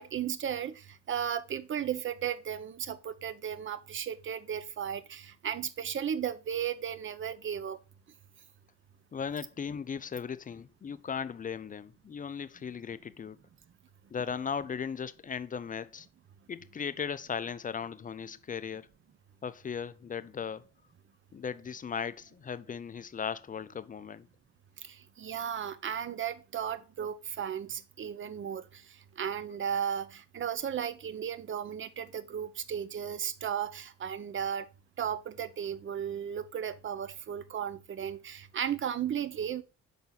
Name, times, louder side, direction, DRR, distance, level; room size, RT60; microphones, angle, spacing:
voice 1, 0.0-7.8 24.8-34.7 35.0-39.6, right 8 dB, 40° right, 0.7 m, -35 dB
voice 2, 9.1-13.4 14.1-16.1 16.5-18.9 19.4-20.7 21.3-24.3, left 6 dB, 30° left, 0.4 m, -37 dB
5.7 x 4.1 x 3.9 m
cardioid pair, 90°, 30 cm